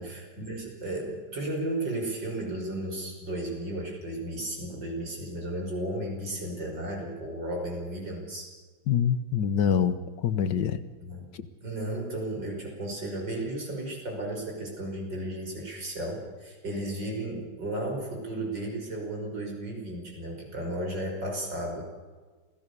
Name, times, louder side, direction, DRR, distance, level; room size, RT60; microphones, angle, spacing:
voice 1, 0.0-8.5 11.0-11.3 11.6-21.8, right 1 dB, 70° right, 1 dB, 6.4 m, -34 dB
voice 2, 8.9-10.8 11.3-11.4, left 8 dB, 70° left, 12 dB, 1.8 m, -25 dB
27.5 x 17.5 x 6.9 m, 1.4 s
omnidirectional pair, 2.0 m